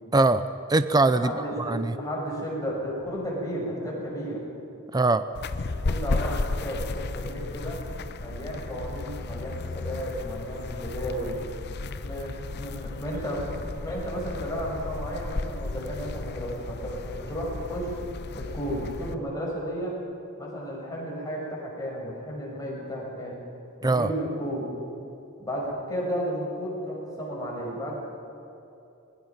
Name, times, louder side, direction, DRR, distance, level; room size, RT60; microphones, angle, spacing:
voice 1, 0.1-1.3 1.6-1.9 4.9-5.3 23.8-24.1, right 2 dB, 20° right, 12 dB, 0.5 m, -22 dB
voice 2, 1.1-4.4 5.8-7.8 8.2-11.4 12.0-17.9 18.3-20.0 20.4-23.4 23.8-24.6 25.4-28.0, equal, 15° left, -4 dB, 6.0 m, -33 dB
sound 1, 5.3-19.1, left 3 dB, 50° left, 0.7 m, -34 dB
25.5 x 21.5 x 5.9 m, 2.7 s
head